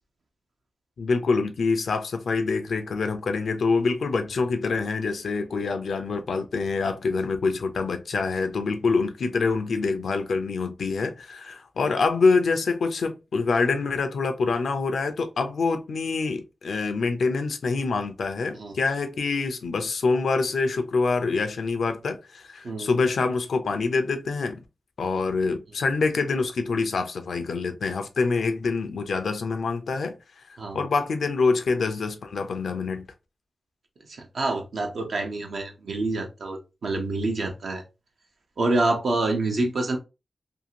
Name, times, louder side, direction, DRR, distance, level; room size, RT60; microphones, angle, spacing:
voice 1, 1.0-24.6 25.0-33.1, left 4 dB, 85° left, 0.4 m, -26 dB
voice 2, 34.1-37.8 38.6-40.0, right 2 dB, 80° right, 0.7 m, -27 dB
2.7 x 2.4 x 2.8 m
cardioid pair, 55°, 0 cm